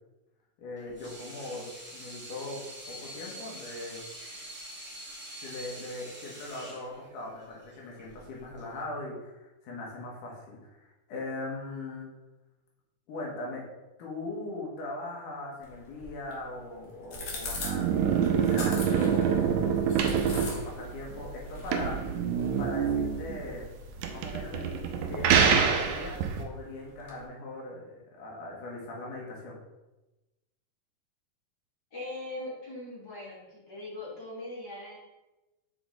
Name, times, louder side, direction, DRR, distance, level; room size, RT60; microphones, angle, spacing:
voice 1, 0.6-2.6 2.9-4.0 5.4-12.1 13.1-13.6 14.0-19.5 20.1-22.1 22.6-23.6 24.1-24.8 25.1-29.6, left 2 dB, 85° left, -3 dB, 2.9 m, -40 dB
Water tap faucet / Sink (filling or washing), 0.8-8.8, right 1 dB, 5° right, 0.8 m, -45 dB
sound 1, 15.6-27.3, left 3 dB, 55° left, 1.6 m, -45 dB
sound 2, 17.2-26.4, right 7 dB, 75° right, 1.9 m, -26 dB
voice 2, 31.9-35.0, left 2 dB, 35° left, -7 dB, 2.3 m, -40 dB
6.9 x 4.1 x 3.8 m, 1.0 s
omnidirectional pair, 3.6 m